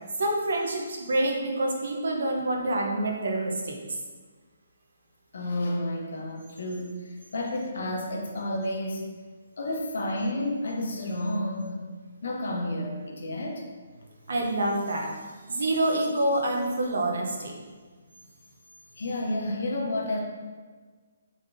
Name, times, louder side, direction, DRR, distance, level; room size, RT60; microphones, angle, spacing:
voice 1, 0.2-3.8 14.3-15.1 15.5-17.5, right 1 dB, 70° right, 0 dB, 0.7 m, -27 dB
voice 2, 5.3-9.1 9.6-11.8 12.2-13.7 19.0-20.2, left 1 dB, 65° left, 0 dB, 0.7 m, -31 dB
3.8 x 3.5 x 2.6 m, 1.4 s
hypercardioid pair, 170°, 0 cm